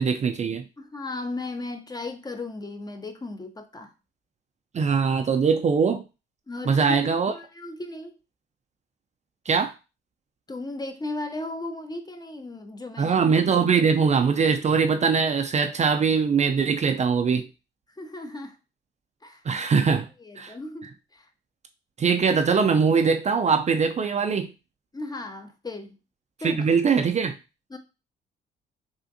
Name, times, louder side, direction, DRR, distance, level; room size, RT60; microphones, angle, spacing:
voice 1, 0.0-0.6 4.7-6.0 6.6-7.3 9.5-9.7 13.0-17.5 19.5-20.1 20.4-20.5 22.0-24.5 26.4-27.4, right 5 dB, 35° right, 0.4 m, -22 dB
voice 2, 0.8-3.9 6.5-8.2 10.5-13.2 18.0-18.6 19.2-19.4 20.2-21.3 24.9-26.0 26.4-26.7 27.7-27.8, left 2 dB, 20° left, 0.6 m, -36 dB
3.5 x 2.5 x 2.6 m
supercardioid pair, 70°, 20 cm